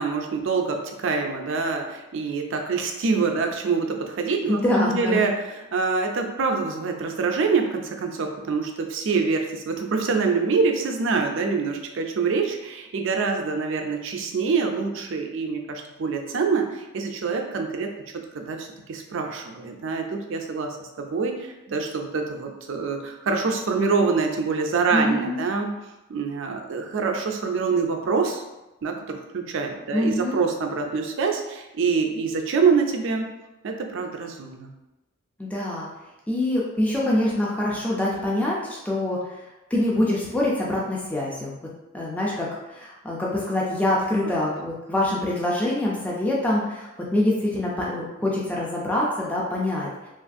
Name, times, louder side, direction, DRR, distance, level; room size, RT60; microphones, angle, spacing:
voice 1, 0.0-17.9 18.3-25.7 26.1-28.4 28.8-33.3 33.6-34.7 44.2-44.3, right 4 dB, 60° right, 3 dB, 0.4 m, -25 dB
voice 2, 4.5-5.2 24.9-25.4 29.9-30.4 35.4-35.9 36.3-39.2 39.7-41.6 41.9-49.9, left 1 dB, 5° left, -5 dB, 0.4 m, -25 dB
3.0 x 2.4 x 2.5 m, 0.99 s
head